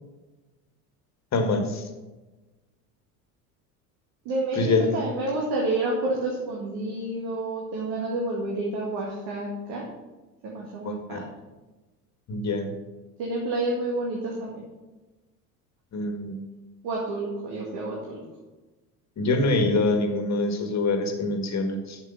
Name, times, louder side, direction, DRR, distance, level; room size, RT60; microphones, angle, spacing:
voice 1, 1.3-1.8 4.6-4.9 10.9-11.2 12.3-12.7 15.9-16.4 19.2-22.0, left 2 dB, 35° left, 5 dB, 1.8 m, -25 dB
voice 2, 4.3-9.9 10.4-11.2 13.2-14.6 16.8-18.2, right 2 dB, 60° right, -2 dB, 2.2 m, -29 dB
7.7 x 7.0 x 5.8 m, 1.1 s
hypercardioid pair, 70°, 45 cm